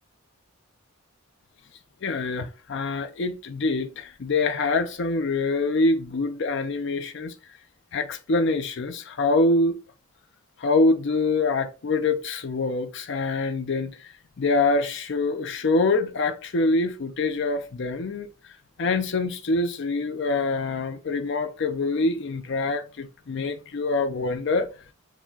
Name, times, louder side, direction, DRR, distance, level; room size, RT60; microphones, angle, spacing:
voice 1, 2.0-7.3 7.9-9.8 10.6-18.3 18.8-24.7, left 3 dB, 55° left, 0.5 m, -25 dB
4.8 x 2.2 x 3.7 m
head